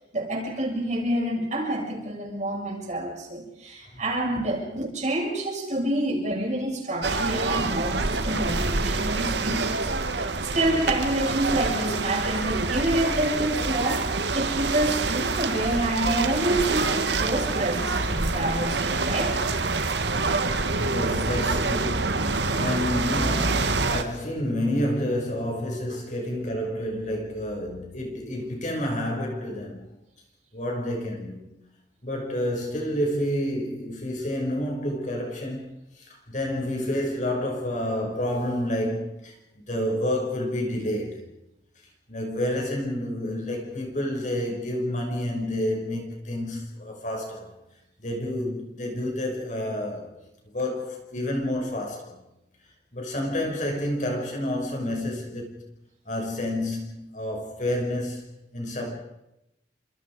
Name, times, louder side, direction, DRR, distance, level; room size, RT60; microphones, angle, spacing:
voice 1, 0.1-10.2 10.5-19.4, right 1 dB, 40° right, 7.1 m, -28 dB
sound 1, 7.0-24.0, right 3 dB, 80° right, 1.9 m, -26 dB
voice 2, 20.8-29.8 30.5-31.5 32.0-41.3 42.1-47.5 48.0-50.1 50.4-52.2 52.9-55.6 56.0-58.9, left 1 dB, 45° left, 6.3 m, -29 dB
29.5 x 26.5 x 5.0 m
head